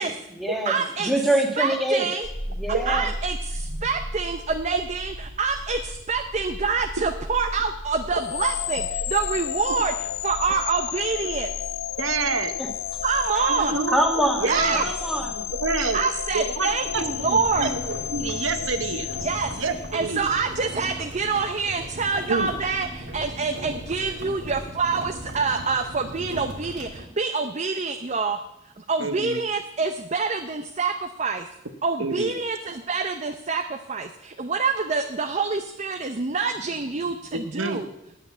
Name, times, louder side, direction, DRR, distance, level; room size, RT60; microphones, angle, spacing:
voice 1, 0.0-0.7 1.0-2.1 2.6-3.1 12.6-12.7 13.9-15.5, right 1 dB, ahead, 2 dB, 1.6 m, -25 dB
voice 2, 0.7-1.1 1.6-2.3 2.9-11.5 13.0-13.8 14.4-14.9 15.9-17.7 19.2-19.5 19.9-28.4 28.6-31.5 31.8-37.9, right 4 dB, 35° right, 6 dB, 0.6 m, -26 dB
sound 1, 2.2-19.9, equal, 35° left, 2.1 m, -38 dB
sound 2, 8.1-20.2, left 12 dB, 75° left, 0.4 m, -32 dB
voice 3, 12.0-12.5 13.4-14.8 15.6-16.0 16.3-20.2 22.3-22.5 29.0-29.4 32.0-32.3 37.3-37.8, right 4 dB, 80° right, 8 dB, 1.1 m, -28 dB
sound 3, 16.9-27.0, right 1 dB, 60° right, 2.4 m, -38 dB
9.6 x 8.0 x 8.0 m, 0.86 s
head